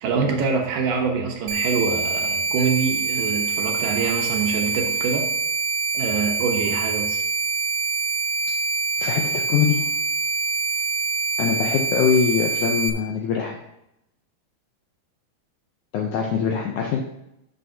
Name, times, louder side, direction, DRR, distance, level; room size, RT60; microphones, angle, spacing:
voice 1, 0.0-5.2 5.9-7.2, right 5 dB, 70° right, 2 dB, 2.5 m, -25 dB
sound 1, 1.5-12.9, right 4 dB, 85° right, 2.5 m, -25 dB
voice 2, 9.0-9.9 11.4-13.6 15.9-17.0, left 7 dB, 80° left, 1 dB, 1.8 m, -23 dB
12.0 x 6.8 x 2.8 m, 0.85 s
omnidirectional pair, 4.3 m